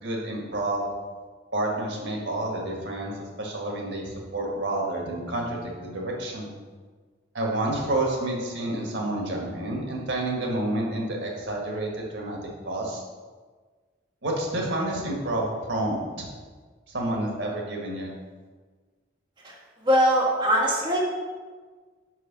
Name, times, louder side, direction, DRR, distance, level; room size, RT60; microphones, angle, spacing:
voice 1, 0.0-0.9 1.5-6.5 7.3-12.4 12.6-13.0 14.2-16.2 16.9-18.1, right 1 dB, 80° right, -1 dB, 1.6 m, -29 dB
voice 2, 19.8-21.0, equal, 25° right, -5 dB, 1.5 m, -21 dB
5.2 x 4.8 x 5.9 m, 1.4 s
head